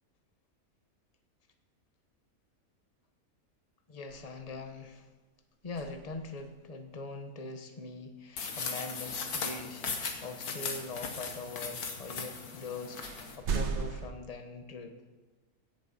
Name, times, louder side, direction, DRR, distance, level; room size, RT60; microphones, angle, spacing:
voice 1, 3.9-5.1 5.6-9.9 10.2-13.1 13.4-14.9, left 3 dB, 30° left, 6 dB, 1.0 m, -42 dB
sound 1, 4.1-4.9 5.6-6.6 10.1-10.2 12.3-12.4 13.0-14.1, right 5 dB, 55° right, 1.1 m, -37 dB
sound 2, 8.4-13.4, left 5 dB, 85° left, 1.8 m, -38 dB
16.0 x 7.5 x 5.6 m, 1.2 s
omnidirectional pair, 1.6 m